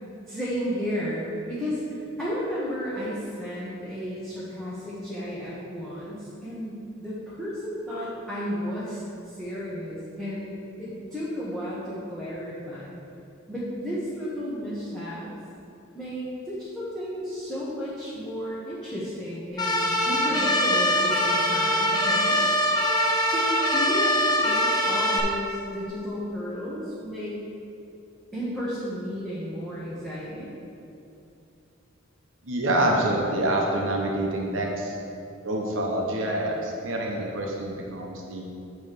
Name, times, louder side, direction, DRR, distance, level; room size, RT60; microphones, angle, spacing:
voice 1, 0.3-13.0 13.5-15.3 15.9-22.4 23.2-27.4 28.3-30.5, equal, ahead, -10 dB, 1.2 m, -33 dB
sound 1, 19.6-25.2, equal, 20° left, 0.8 m, -23 dB
voice 2, 32.4-34.9 35.4-38.5, right 1 dB, 75° right, -1 dB, 1.0 m, -26 dB
9.0 x 3.3 x 6.7 m, 2.7 s
head